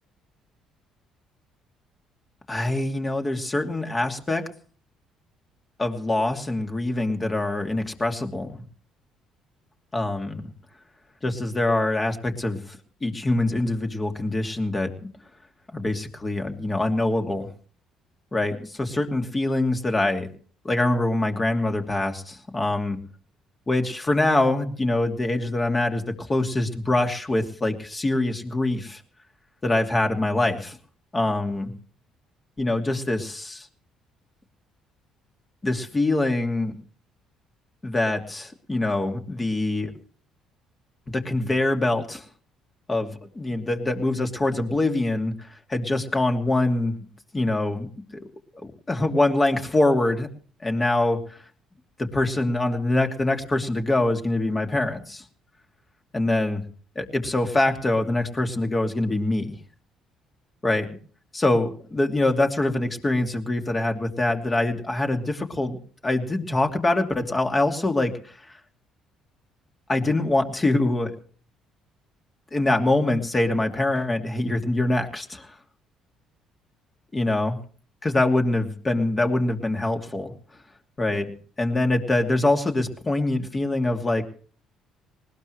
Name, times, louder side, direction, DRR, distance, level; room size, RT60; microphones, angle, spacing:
voice 1, 2.5-4.4 5.8-8.6 9.9-10.4 11.2-15.1 15.7-17.5 18.3-20.3 20.6-23.0 23.7-29.0 29.6-30.8 31.1-31.7 32.6-33.7 35.6-36.7 37.8-39.9 41.1-42.2 42.9-45.3 45.7-47.1 47.3-48.2 48.5-50.3 50.6-51.2 52.0-55.2 56.1-56.6 57.0-59.5 60.6-60.9 61.3-65.8 66.0-68.4 69.9-71.1 72.5-75.5 77.1-77.6 78.0-80.3 81.0-81.3 81.6-84.2, left 2 dB, 25° left, 4 dB, 2.7 m, -24 dB
20.0 x 19.0 x 3.2 m, 0.43 s
hypercardioid pair, 55°, 0 cm